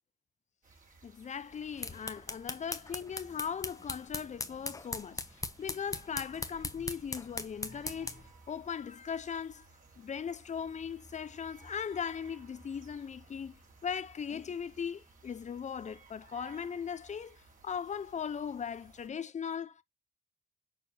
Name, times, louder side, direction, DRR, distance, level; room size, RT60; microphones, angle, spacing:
sound 1, 0.6-19.1, right 3 dB, 40° right, 2.9 m, -59 dB
voice 1, 1.0-9.7 10.0-19.8, left 7 dB, 35° left, 0.7 m, -39 dB
sound 2, 1.5-8.3, left 3 dB, 15° left, 1.1 m, -40 dB
6.9 x 5.0 x 2.8 m
cardioid pair, 90°, 20 cm